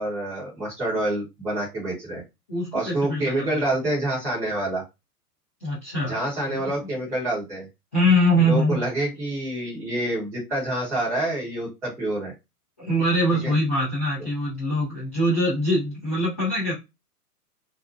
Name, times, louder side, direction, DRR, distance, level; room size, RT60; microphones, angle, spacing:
voice 1, 0.0-2.2 2.7-4.8 6.1-7.7 8.4-12.3 13.3-13.5, right 1 dB, 5° right, 0.8 m, -27 dB
voice 2, 2.5-3.5 5.6-6.2 6.5-6.6 7.9-8.8 12.8-16.7, equal, 10° left, 0.5 m, -23 dB
2.6 x 2.2 x 2.5 m
figure-of-eight pair, 120°, 47 cm